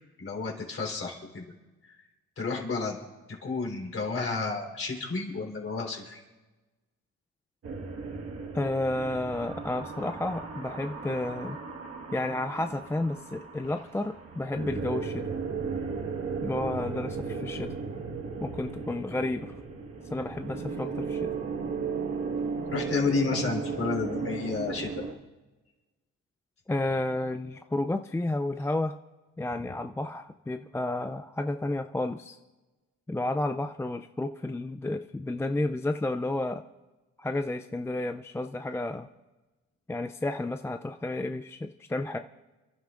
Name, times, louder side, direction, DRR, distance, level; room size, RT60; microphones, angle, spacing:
voice 1, 0.2-1.4 1.8-2.0 2.4-3.0 3.4-6.2 22.7-25.0, left 4 dB, 45° left, 0 dB, 3.8 m, -31 dB
sound 1, 7.6-25.1, right 5 dB, 50° right, 1.7 m, -35 dB
voice 2, 8.5-11.6 12.1-15.2 16.4-17.7 18.4-19.5 20.1-21.3 26.7-28.9 29.4-32.4 33.1-36.6 37.2-39.1 39.9-42.2, left 2 dB, 10° left, 8 dB, 0.4 m, -31 dB
30.0 x 11.5 x 2.5 m, 1.1 s
cardioid pair, 90°, 30 cm